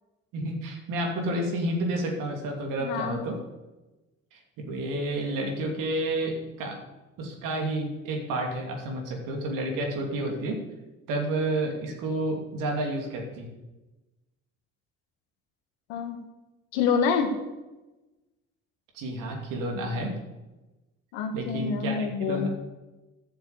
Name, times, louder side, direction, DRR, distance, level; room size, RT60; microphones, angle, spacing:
voice 1, 0.3-3.4 4.3-6.8 7.2-10.6 11.1-13.5 18.9-20.1 21.3-22.5, right 1 dB, 80° right, 2 dB, 2.8 m, -30 dB
voice 2, 2.8-3.2 15.9-16.2 16.7-17.3 21.1-22.5, left 6 dB, 90° left, 6 dB, 1.7 m, -27 dB
11.0 x 7.1 x 8.5 m, 1.1 s
hypercardioid pair, 60°, 32 cm